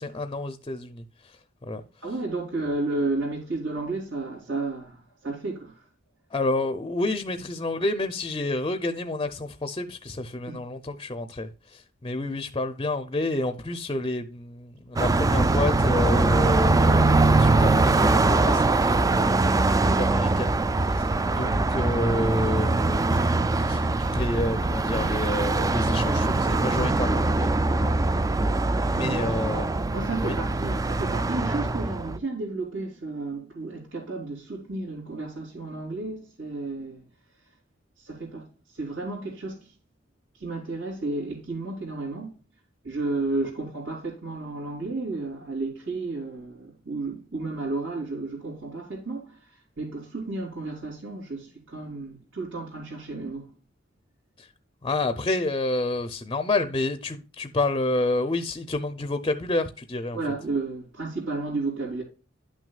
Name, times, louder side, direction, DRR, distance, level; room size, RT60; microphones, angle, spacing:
voice 1, 0.0-1.4 1.7-1.8 6.3-20.6 20.9-21.1 21.4-23.3 23.6-27.5 27.8-27.9 28.9-29.7 30.2-30.4 54.4-54.5 54.8-60.2, left 2 dB, 25° left, 0.6 m, -29 dB
voice 2, 2.0-5.7 10.5-10.6 28.9-29.4 29.9-37.0 38.0-38.4 38.7-39.7 40.4-42.3 42.8-49.4 49.8-53.5 60.1-62.0, right 3 dB, 80° right, 3.0 m, -32 dB
Car passing by, 15.0-32.2, right 2 dB, 20° right, 0.3 m, -22 dB
11.0 x 6.2 x 2.3 m
head